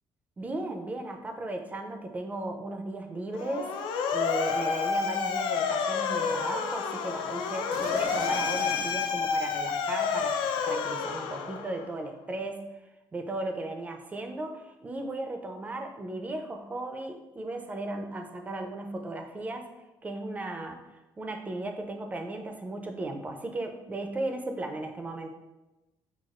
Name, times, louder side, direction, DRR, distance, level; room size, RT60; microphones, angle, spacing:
voice 1, 0.4-3.7 4.1-10.4 10.7-12.7 13.1-19.7 20.0-20.8 21.2-25.3, right 2 dB, 20° right, 4 dB, 0.4 m, -36 dB
Motor vehicle (road) / Siren, 3.3-11.9, left 5 dB, 75° left, 0.4 m, -29 dB
sound 1, 7.7-9.4 10.1-11.5 12.3-12.4, right 3 dB, 80° right, 0.5 m, -43 dB
5.8 x 2.3 x 2.4 m, 1.0 s
cardioid pair, 135°, 9 cm